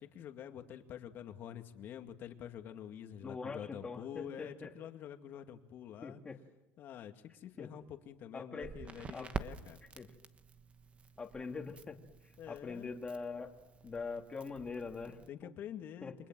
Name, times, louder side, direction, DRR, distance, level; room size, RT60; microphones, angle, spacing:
voice 1, 0.0-6.2 6.8-9.8 12.4-12.9 15.3-16.1, left 9 dB, 50° left, 6 dB, 2.2 m, -47 dB
voice 2, 3.2-4.7 6.0-6.4 7.6-7.7 8.3-8.7 9.1-9.3 10.0-10.1 11.2-12.0 12.2-13.5 13.8-15.5 16.0-16.1, left 4 dB, 20° left, 4 dB, 2.5 m, -43 dB
Crackle, 8.6-15.3, right 5 dB, 25° right, 1.2 m, -48 dB
29.5 x 25.0 x 7.7 m, 0.98 s
cardioid pair, 135°, 5 cm